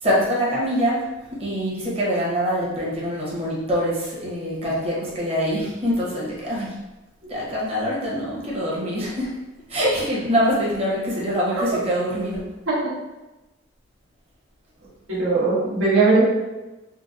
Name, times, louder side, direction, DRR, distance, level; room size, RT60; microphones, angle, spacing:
voice 1, 0.0-1.1 1.4-6.7 7.2-9.3 9.7-12.4, equal, 30° right, -5 dB, 0.9 m, -24 dB
voice 2, 15.1-16.2, right 3 dB, 85° right, -7 dB, 1.1 m, -19 dB
3.8 x 2.2 x 2.6 m, 1.1 s
head